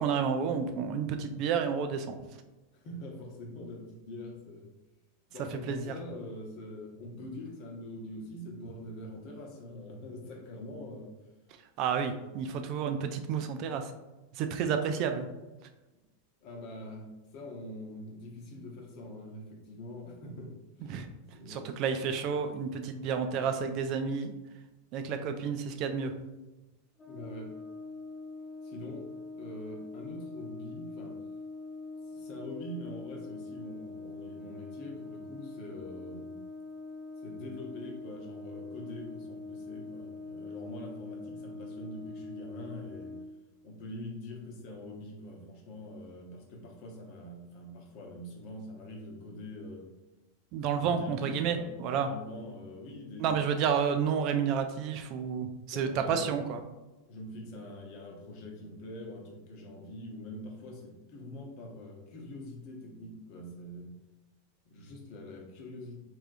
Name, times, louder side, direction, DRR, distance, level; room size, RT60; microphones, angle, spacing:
voice 1, 0.0-2.1 5.5-5.9 11.8-13.9 14.3-15.3 20.9-21.1 21.5-24.3 24.9-26.1 50.5-52.1 53.2-56.6, right 6 dB, 45° right, 7 dB, 0.3 m, -30 dB
voice 2, 2.7-4.7 5.3-11.1 16.4-20.5 20.8-21.0 21.3-21.7 27.1-27.5 28.6-31.2 32.1-36.3 37.2-43.1 43.6-49.8 50.7-53.4 55.7-56.4 57.1-63.9 64.7-66.0, left 1 dB, 50° left, 1 dB, 0.8 m, -44 dB
Brass instrument, 27.0-43.4, left 3 dB, 20° left, 0.5 m, -43 dB
3.5 x 3.2 x 2.5 m, 1.1 s
figure-of-eight pair, 90°, 0 cm